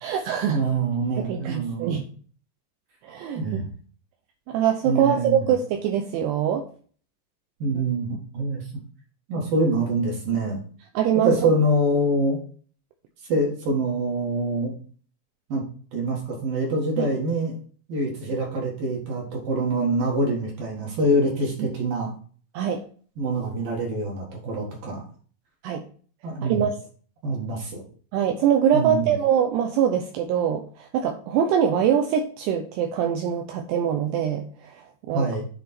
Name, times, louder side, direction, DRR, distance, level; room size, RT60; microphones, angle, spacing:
voice 1, 0.0-0.6 1.2-2.1 3.0-3.6 4.5-6.7 11.0-11.3 17.0-17.1 21.6-21.7 22.5-22.8 25.6-25.8 26.5-26.7 28.1-35.3, right 8 dB, 80° right, 4 dB, 2.5 m, -23 dB
voice 2, 0.5-2.0 3.3-3.7 4.8-5.4 7.6-8.6 9.3-10.6 11.2-12.4 13.3-14.7 15.5-15.6 15.9-17.6 17.9-22.1 23.2-25.0 26.2-26.7 27.2-27.8 28.7-29.1 35.1-35.5, right 1 dB, 60° right, -1 dB, 2.9 m, -25 dB
10.0 x 3.6 x 4.3 m, 0.43 s
omnidirectional pair, 5.4 m